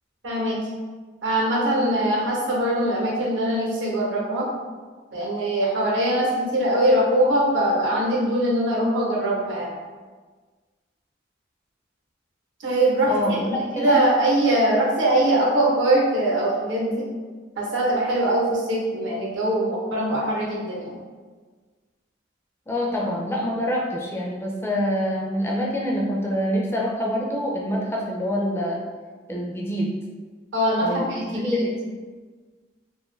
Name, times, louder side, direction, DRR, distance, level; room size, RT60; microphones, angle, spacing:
voice 1, 0.2-0.6 1.2-4.5 5.1-9.7 12.6-13.4 13.7-17.1 17.6-21.0 30.5-31.6, right 1 dB, 75° right, -4 dB, 0.8 m, -22 dB
voice 2, 13.1-14.0 22.7-28.8 29.3-29.9 30.8-31.7, equal, 15° left, -2 dB, 0.4 m, -26 dB
2.5 x 2.3 x 3.1 m, 1.4 s
head